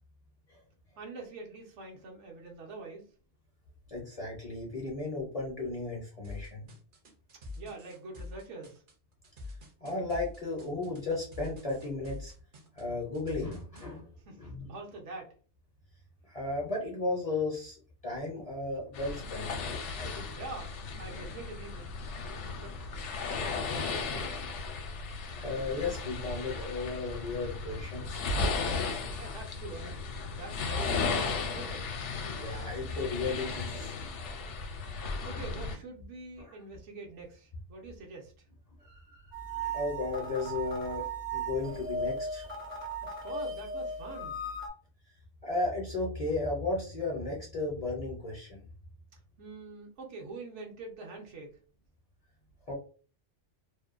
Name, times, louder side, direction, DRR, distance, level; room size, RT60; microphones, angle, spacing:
voice 1, 1.0-3.1 7.6-8.8 14.3-15.3 20.3-21.9 22.6-22.9 23.3-24.4 29.1-31.2 31.5-31.9 35.0-38.3 43.0-44.4 49.4-51.6, right 3 dB, 80° right, 1 dB, 1.0 m, -45 dB
voice 2, 3.9-6.7 9.8-12.3 12.7-14.1 14.4-14.7 16.3-19.5 19.9-20.3 25.4-28.2 32.4-33.9 38.8-39.2 39.5-42.4 45.4-48.6 52.7-52.8, left 3 dB, 40° left, -3 dB, 0.5 m, -35 dB
sound 1, 6.2-13.9, left 3 dB, 50° right, 0.7 m, -45 dB
sound 2, 18.9-35.8, left 4 dB, 75° left, 0.9 m, -35 dB
sound 3, 39.3-44.7, right 2 dB, 20° right, 0.3 m, -37 dB
2.6 x 2.1 x 2.4 m, 0.39 s
omnidirectional pair, 1.2 m